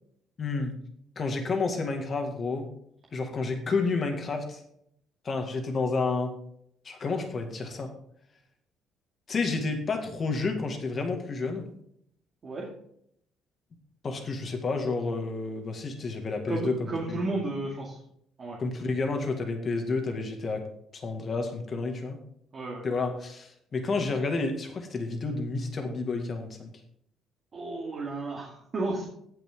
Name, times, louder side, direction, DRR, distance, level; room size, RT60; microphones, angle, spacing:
voice 1, 0.4-0.7 1.2-2.7 3.1-4.6 5.2-6.3 6.9-7.9 9.3-11.7 14.0-17.3 18.6-20.6 20.9-22.2 22.8-26.7, left 3 dB, 30° left, 4 dB, 2.0 m, -30 dB
voice 2, 16.5-18.0 18.4-18.6 22.5-22.8 27.5-29.0, right 2 dB, 30° right, -4 dB, 2.4 m, -33 dB
17.5 x 5.9 x 3.7 m, 0.69 s
cardioid pair, 160°, 0 cm